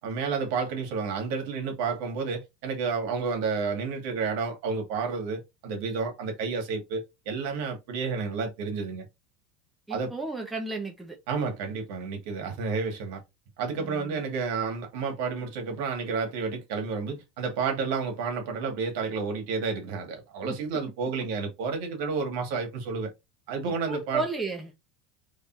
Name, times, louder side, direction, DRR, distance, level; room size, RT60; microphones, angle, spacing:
voice 1, 0.0-9.1 9.9-10.1 11.3-13.2 13.6-23.1 23.5-24.2, right 5 dB, 70° right, 2.0 m, -31 dB
voice 2, 9.9-11.2 13.8-14.2 20.4-20.8 23.6-24.7, right 3 dB, 5° right, 1.2 m, -34 dB
4.1 x 3.4 x 2.7 m
supercardioid pair, 140°, 0 cm